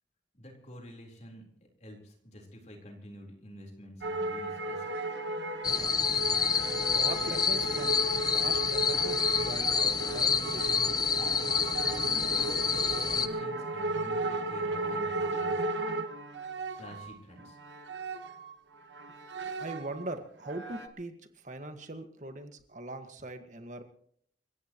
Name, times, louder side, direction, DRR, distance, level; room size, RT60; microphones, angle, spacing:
voice 1, 0.3-1.5 1.8-5.0 12.2-12.6 13.1-15.6 16.7-17.6, equal, 40° left, 1 dB, 4.2 m, -48 dB
sound 1, 4.0-18.6 18.9-20.1 20.4-20.9, right 2 dB, 70° right, 1.4 m, -35 dB
sound 2, 5.6-13.3, left 6 dB, 20° left, 0.7 m, -28 dB
voice 2, 6.9-8.0 8.3-11.2 19.6-23.8, right 2 dB, 40° right, 7 dB, 1.8 m, -41 dB
29.0 x 15.5 x 3.1 m, 0.65 s
head